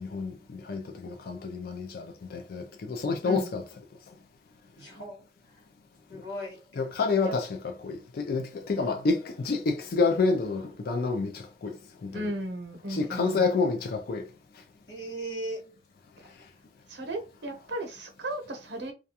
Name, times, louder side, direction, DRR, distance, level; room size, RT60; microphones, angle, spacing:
voice 1, 0.0-3.6 6.7-12.3 12.9-14.2, left 4 dB, 55° left, 0.4 m, -29 dB
voice 2, 4.8-5.3 6.1-6.6 13.0-13.2 14.9-15.8 16.2-16.3, right 1 dB, 70° left, 1.3 m, -38 dB
voice 3, 12.1-13.4 16.9-18.9, right 1 dB, 75° right, 0.7 m, -35 dB
2.4 x 2.3 x 2.7 m
head